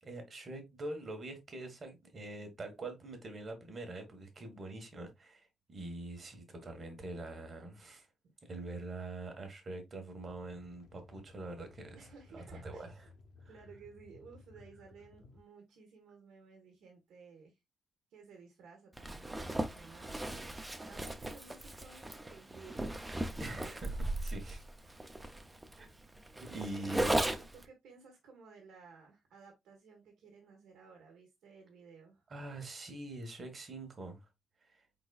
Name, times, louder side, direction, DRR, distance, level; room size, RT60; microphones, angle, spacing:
voice 1, 0.0-8.1 8.5-12.0 12.3-13.1 23.4-24.6 25.8-25.9 26.5-27.3 32.3-34.2 34.6-34.8, right 2 dB, 30° right, 1.3 m, -44 dB
sound 1, 10.2-15.4, left 3 dB, 75° left, 0.9 m, -58 dB
voice 2, 11.9-12.9 13.5-17.6 18.1-23.0 26.7-27.0 27.4-32.2, right 5 dB, 85° right, 1.4 m, -56 dB
Zipper (clothing), 19.0-27.6, right 1 dB, 10° right, 0.5 m, -37 dB
4.8 x 4.0 x 2.3 m
cardioid pair, 175°, 0 cm